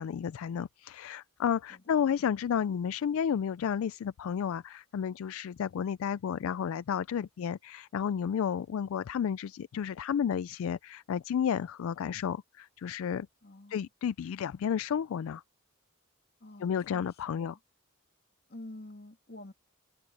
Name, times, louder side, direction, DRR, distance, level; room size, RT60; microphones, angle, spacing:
voice 1, 0.0-13.3 13.7-15.4 16.6-17.6, left 8 dB, 70° left, 0.3 m, -32 dB
voice 2, 13.4-13.9 16.4-17.6 18.5-19.5, left 1 dB, 45° left, 2.6 m, -48 dB
open air
head